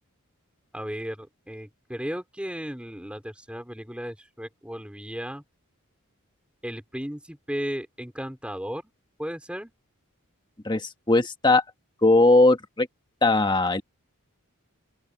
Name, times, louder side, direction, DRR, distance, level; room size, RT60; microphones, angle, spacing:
voice 1, 0.7-5.4 6.6-8.8 9.2-9.7, equal, 5° right, 3.1 m, -35 dB
voice 2, 10.6-11.6 12.0-12.9 13.2-13.8, left 2 dB, 20° left, 1.4 m, -19 dB
open air
head